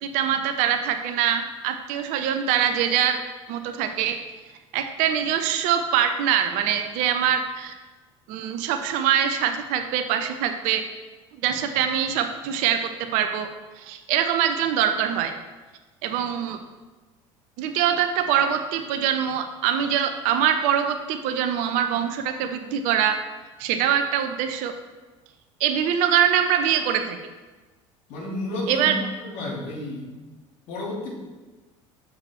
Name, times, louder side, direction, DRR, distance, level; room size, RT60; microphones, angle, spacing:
voice 1, 0.0-3.2 3.5-4.2 4.7-7.8 8.3-10.8 11.4-12.8 13.1-13.5 13.8-15.3 16.0-16.6 17.6-23.2 23.6-24.7 25.6-27.2 28.7-29.0, right 9 dB, 50° right, 7 dB, 0.7 m, -23 dB
voice 2, 28.1-30.0 30.7-31.1, left 1 dB, 50° left, -3 dB, 2.5 m, -31 dB
8.1 x 6.9 x 3.5 m, 1.3 s
figure-of-eight pair, 65°, 16 cm